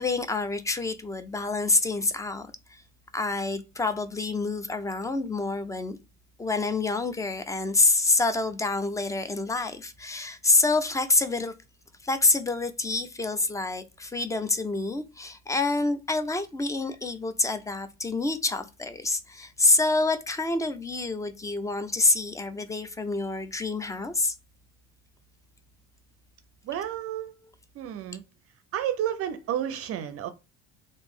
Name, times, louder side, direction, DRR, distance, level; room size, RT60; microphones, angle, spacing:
voice 1, 0.0-2.8 3.1-6.0 6.4-11.5 12.0-24.3, left 3 dB, 10° left, 0.4 m, -27 dB
voice 2, 26.6-27.4 27.7-28.2 28.7-30.3, right 10 dB, 50° right, 0.5 m, -31 dB
3.0 x 2.6 x 3.5 m
cardioid pair, 110°, 29 cm